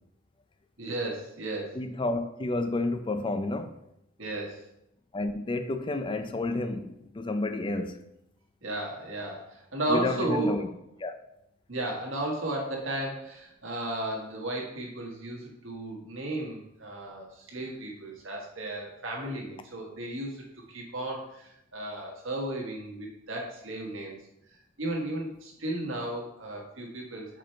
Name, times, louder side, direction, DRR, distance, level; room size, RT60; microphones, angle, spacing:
voice 1, 0.8-1.8 4.2-4.6 8.6-10.6 11.7-20.4 20.7-24.2 24.8-27.4, right 1 dB, 70° right, 1.5 m, -34 dB
voice 2, 1.7-3.7 5.1-8.0 9.9-10.6 11.0-11.2, left 2 dB, 25° left, 0.4 m, -30 dB
5.0 x 4.5 x 4.5 m
head